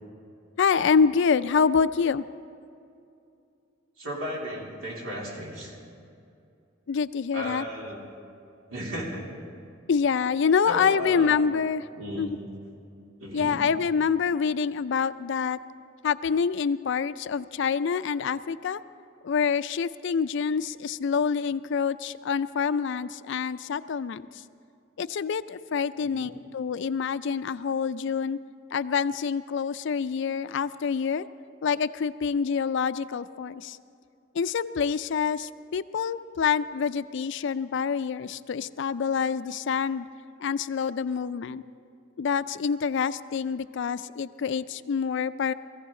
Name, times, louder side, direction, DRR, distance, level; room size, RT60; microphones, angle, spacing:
voice 1, 0.6-2.2 6.9-7.6 9.9-11.8 12.1-12.4 13.3-15.6 16.0-18.8 19.2-24.2 25.0-28.4 28.7-31.3 31.6-33.8 34.4-40.1 40.4-41.6 42.2-45.5, left 6 dB, 65° left, 14 dB, 0.4 m, -26 dB
voice 2, 4.0-5.8 7.3-8.0 8.7-9.3 10.6-11.4 12.0-12.3 13.2-13.6 26.0-26.3, equal, 90° right, -3 dB, 3.3 m, -35 dB
20.0 x 15.0 x 3.8 m, 2.6 s
head